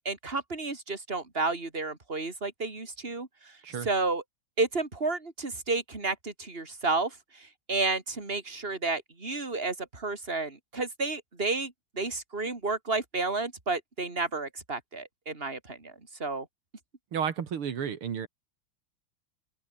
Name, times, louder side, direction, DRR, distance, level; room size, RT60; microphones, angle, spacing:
voice 1, 0.0-4.2 4.6-15.9 16.2-16.5, right 3 dB, 25° right, 3.9 m, -31 dB
voice 2, 17.1-18.3, right 7 dB, 80° right, 2.7 m, -32 dB
open air
omnidirectional pair, 2.4 m